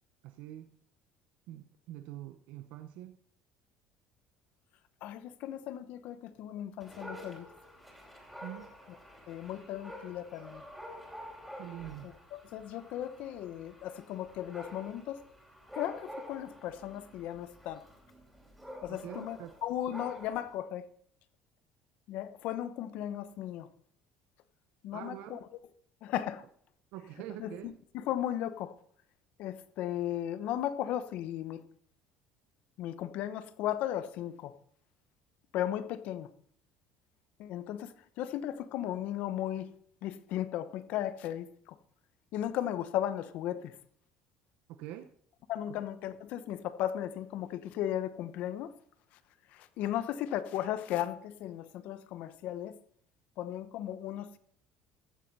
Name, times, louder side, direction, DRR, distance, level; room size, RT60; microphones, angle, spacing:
voice 1, 0.2-0.7 1.5-3.2 8.4-8.7 11.6-12.2 18.9-19.5 24.9-25.4 26.9-27.7 44.8-45.1 45.7-45.8, right 13 dB, 70° right, 0.7 m, -45 dB
voice 2, 5.0-7.5 9.3-10.6 12.0-15.2 15.7-17.8 18.8-20.8 22.1-23.7 24.8-25.4 26.0-26.4 27.4-28.7 29.4-31.6 32.8-34.5 35.5-36.3 37.4-39.7 40.0-41.7 42.3-43.7 45.5-48.7 49.5-52.8 53.4-54.4, left 11 dB, 60° left, 0.9 m, -36 dB
Dog, 6.8-20.6, equal, ahead, 2.9 m, -49 dB
15.0 x 7.5 x 5.5 m
cardioid pair, 160°, 3 cm